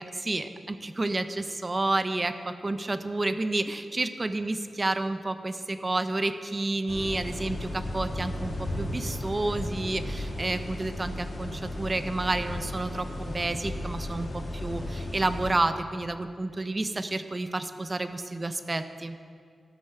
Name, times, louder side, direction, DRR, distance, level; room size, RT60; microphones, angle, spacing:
voice 1, 0.0-19.2, right 2 dB, 25° right, 10 dB, 0.5 m, -30 dB
sound 1, 6.9-15.5, left 1 dB, 50° left, 2.0 m, -35 dB
12.5 x 6.2 x 6.6 m, 2.2 s
wide cardioid pair, 130°, 0 cm